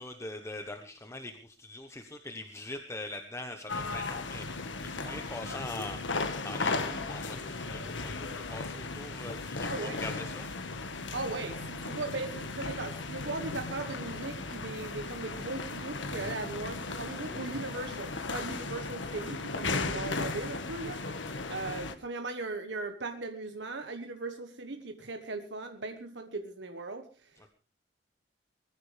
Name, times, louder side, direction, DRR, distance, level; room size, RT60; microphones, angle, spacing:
voice 1, 0.0-10.5 27.4-27.5, left 2 dB, 15° left, 5 dB, 1.1 m, -43 dB
sound 1, 3.7-21.9, left 3 dB, 80° left, 1.6 m, -36 dB
voice 2, 9.6-10.0 11.1-27.5, right 3 dB, 70° right, 6 dB, 1.3 m, -38 dB
21.0 x 14.5 x 3.4 m, 0.35 s
head